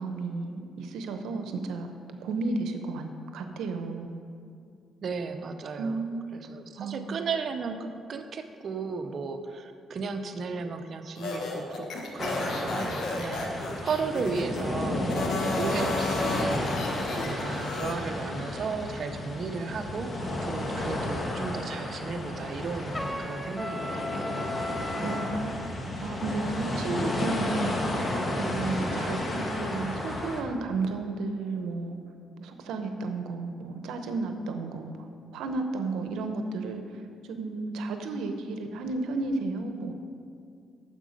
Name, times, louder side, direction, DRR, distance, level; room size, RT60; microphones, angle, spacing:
voice 1, 0.0-1.9 2.2-4.2 5.8-6.3 6.8-7.2 25.0-27.7 28.5-32.0 32.4-35.1 35.3-39.9, right 3 dB, 85° right, 6 dB, 0.8 m, -33 dB
voice 2, 5.0-6.0 6.3-11.9 12.1-15.1 15.5-16.7 17.2-24.3, right 4 dB, 55° right, 7 dB, 0.8 m, -35 dB
sound 1, 11.2-14.6 15.0-18.0, left 3 dB, 75° left, 1.3 m, -33 dB
sound 2, 12.2-30.4, left 1 dB, 35° left, 1.5 m, -32 dB
Trumpet, 22.9-25.5, left 1 dB, 15° left, 0.6 m, -36 dB
9.1 x 7.4 x 5.2 m, 2.4 s
cardioid pair, 90°, 0 cm